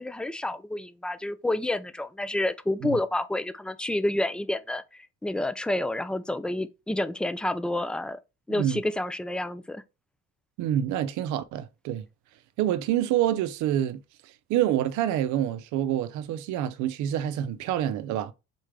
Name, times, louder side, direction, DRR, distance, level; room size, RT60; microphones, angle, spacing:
voice 1, 0.0-4.8 5.2-8.2 8.5-9.8, left 1 dB, 5° left, 0.3 m, -29 dB
voice 2, 8.5-8.8 10.6-12.0 12.6-14.0 14.5-18.3, right 11 dB, 75° right, 0.7 m, -27 dB
4.2 x 3.3 x 3.7 m
cardioid pair, 115°, 30 cm